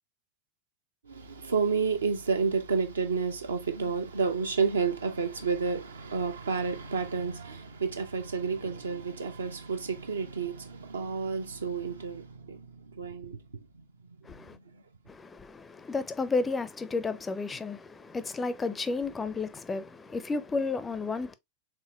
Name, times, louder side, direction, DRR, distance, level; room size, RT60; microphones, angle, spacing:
voice 1, 1.1-13.4 13.7-13.8 14.3-14.8, right 5 dB, 70° right, 0.7 m, -30 dB
voice 2, 14.2-14.6 15.1-21.3, left 3 dB, 15° left, 0.4 m, -32 dB
4.5 x 3.4 x 2.4 m
figure-of-eight pair, 90°, 0 cm